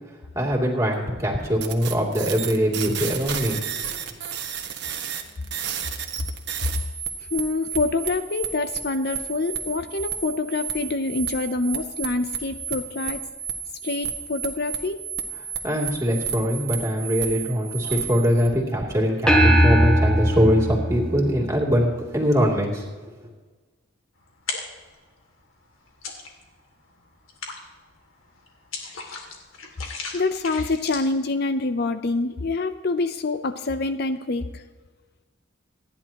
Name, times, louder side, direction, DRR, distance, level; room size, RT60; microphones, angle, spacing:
voice 1, 0.1-3.9 15.6-23.3, equal, 15° right, -2 dB, 2.8 m, -23 dB
sound 1, 1.6-18.5, right 7 dB, 55° right, 1.4 m, -32 dB
voice 2, 7.3-13.2 13.8-15.0 30.1-34.6, left 3 dB, 50° left, 10 dB, 0.6 m, -26 dB
sound 2, 19.3-21.9, equal, 5° left, 1.5 m, -19 dB
sound 3, 24.3-25.0 25.4-26.6 27.0-31.3, left 4 dB, 80° left, 2.5 m, -36 dB
27.0 x 10.5 x 2.9 m, 1.4 s
head